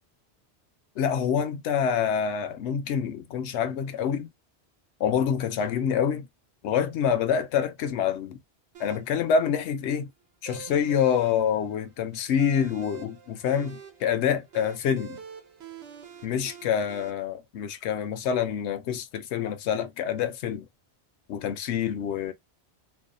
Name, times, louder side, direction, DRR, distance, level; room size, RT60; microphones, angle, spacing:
voice 1, 1.0-4.3 5.0-6.3 6.6-8.4 8.8-10.1 10.4-15.2 16.2-20.7 21.3-22.3, left 7 dB, 80° left, 0.9 m, -26 dB
sound 1, 8.7-17.1, right 8 dB, 85° right, 1.0 m, -47 dB
2.6 x 2.1 x 2.5 m
omnidirectional pair, 1.1 m